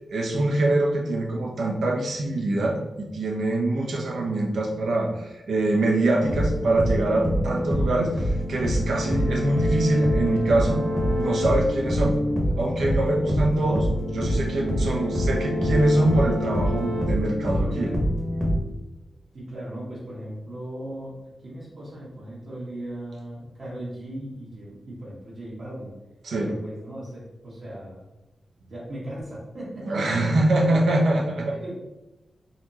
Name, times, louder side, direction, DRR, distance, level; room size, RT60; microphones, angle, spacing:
voice 1, 0.1-10.8 11.2-12.2 12.6-17.9 26.2-26.5 29.9-31.6, right 2 dB, 85° right, 0 dB, 0.7 m, -24 dB
sound 1, 6.2-18.6, equal, 15° right, 1.0 m, -25 dB
voice 2, 19.3-21.1 21.4-25.9 26.4-28.0 28.7-30.3 30.6-30.9 31.5-31.8, right 1 dB, 55° right, -8 dB, 1.4 m, -37 dB
4.1 x 3.0 x 2.8 m, 1.0 s
wide cardioid pair, 140°, 0 cm